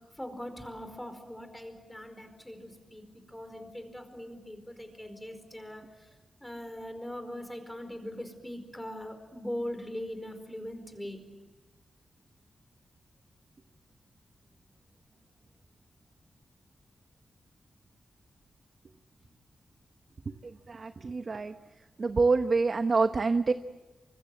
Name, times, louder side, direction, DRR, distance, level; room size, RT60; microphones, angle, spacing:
voice 1, 0.1-6.1 6.4-11.2, left 1 dB, 5° left, 8 dB, 4.8 m, -41 dB
voice 2, 20.4-21.5 22.0-23.5, right 4 dB, 45° right, 8 dB, 1.0 m, -26 dB
28.5 x 25.5 x 7.7 m, 1.2 s
wide cardioid pair, 125°, 0 cm